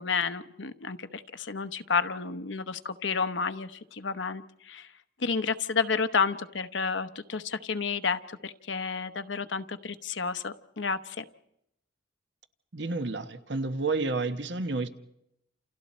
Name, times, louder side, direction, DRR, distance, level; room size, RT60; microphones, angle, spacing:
voice 1, 0.0-4.9 5.2-11.2, left 5 dB, 75° left, 12 dB, 0.9 m, -31 dB
voice 2, 12.7-14.9, right 3 dB, 65° right, 10 dB, 1.2 m, -30 dB
29.0 x 28.5 x 4.3 m, 0.81 s
head